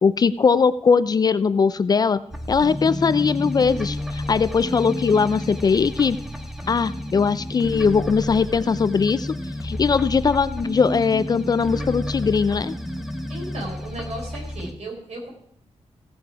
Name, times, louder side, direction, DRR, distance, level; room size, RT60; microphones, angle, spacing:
voice 1, 0.0-2.2 2.5-6.2 6.7-9.4 9.6-12.7, left 5 dB, 35° left, 15 dB, 0.3 m, -20 dB
sound 1, 2.3-14.7, left 1 dB, ahead, 0.9 m, -31 dB
voice 2, 13.3-15.3, right 1 dB, 65° right, -1 dB, 4.3 m, -35 dB
16.0 x 6.9 x 4.7 m, 0.70 s
wide cardioid pair, 170°, 12 cm